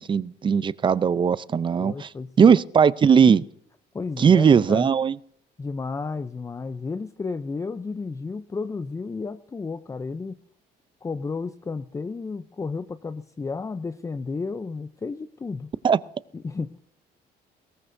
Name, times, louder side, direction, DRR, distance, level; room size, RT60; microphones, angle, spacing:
voice 1, 0.1-2.1 2.4-3.4 4.2-5.2 15.8-16.0, right 6 dB, 30° right, 0.5 m, -18 dB
voice 2, 1.8-2.5 3.9-4.9 5.6-10.4 11.0-15.7 16.3-16.8, left 4 dB, 20° left, 0.6 m, -32 dB
21.0 x 18.0 x 2.7 m
cardioid pair, 110°, 17 cm